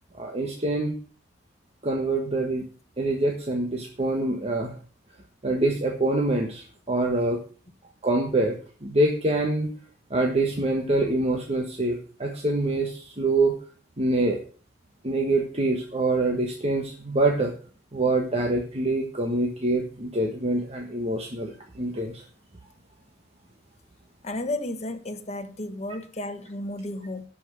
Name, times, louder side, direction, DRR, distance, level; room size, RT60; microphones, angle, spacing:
voice 1, 0.2-1.0 1.8-2.6 3.0-4.8 5.4-7.4 8.0-9.7 10.1-13.5 14.0-14.4 15.0-17.5 17.9-22.2, right 2 dB, 35° right, 1 dB, 1.5 m, -25 dB
voice 2, 24.2-27.2, left 1 dB, 35° left, 7 dB, 1.2 m, -33 dB
12.0 x 5.8 x 6.9 m, 0.41 s
head